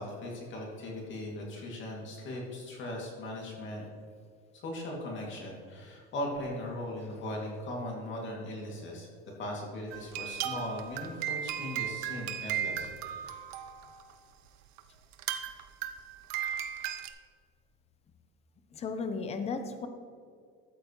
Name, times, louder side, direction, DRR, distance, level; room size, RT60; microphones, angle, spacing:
voice 1, 0.0-3.9 4.5-9.1 9.4-13.4, left 1 dB, 40° left, -2 dB, 2.4 m, -39 dB
sound 1, 9.9-14.1 14.8-14.9 15.1-17.1, right 10 dB, 60° right, 0.7 m, -36 dB
voice 2, 18.7-19.9, left 4 dB, 20° left, 7 dB, 0.7 m, -35 dB
13.0 x 8.5 x 3.1 m, 2.2 s
cardioid pair, 155°, 31 cm